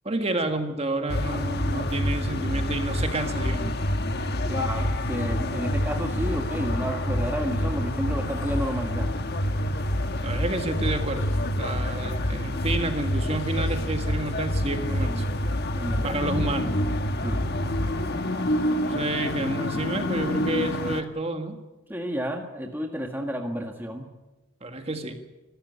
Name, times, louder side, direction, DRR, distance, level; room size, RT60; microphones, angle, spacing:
voice 1, 0.0-3.7 10.2-15.4 16.0-16.8 18.7-21.6 24.6-25.2, right 2 dB, 30° right, 6 dB, 1.8 m, -30 dB
sound 1, 1.1-21.0, left 1 dB, 45° left, 1.4 m, -27 dB
voice 2, 4.4-9.1 15.7-16.2 17.2-17.4 21.9-24.1, equal, 10° right, 3 dB, 1.6 m, -31 dB
sound 2, 6.1-6.8 8.2-8.9 10.1-11.9 13.4-14.1 15.8-16.4 16.7-17.1 18.5-18.9, left 1 dB, 70° left, 4.5 m, -47 dB
25.5 x 13.5 x 9.7 m, 1.1 s
head